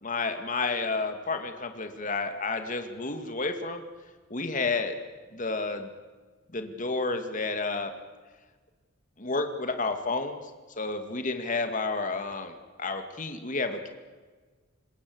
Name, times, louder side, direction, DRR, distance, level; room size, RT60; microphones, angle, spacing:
voice 1, 0.0-3.8 4.3-4.9 5.3-5.9 6.5-7.9 9.2-10.4 10.8-13.9, left 3 dB, 40° left, 6 dB, 2.4 m, -31 dB
27.0 x 21.5 x 8.0 m, 1.4 s
head